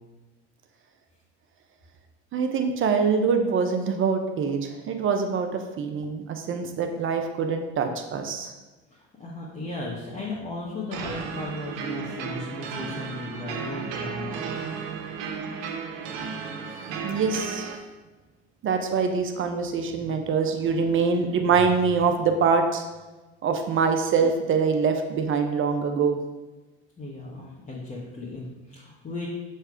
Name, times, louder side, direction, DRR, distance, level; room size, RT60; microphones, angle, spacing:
voice 1, 2.3-8.5 17.0-17.7 18.6-22.8 23.4-26.2, right 5 dB, 45° right, 5 dB, 0.8 m, -24 dB
voice 2, 8.9-14.4 27.0-29.3, left 2 dB, 25° left, -5 dB, 1.3 m, -36 dB
sound 1, 10.9-17.8, right 6 dB, 80° right, 0.9 m, -34 dB
6.7 x 3.3 x 4.9 m, 1.2 s
supercardioid pair, 95°, 30 cm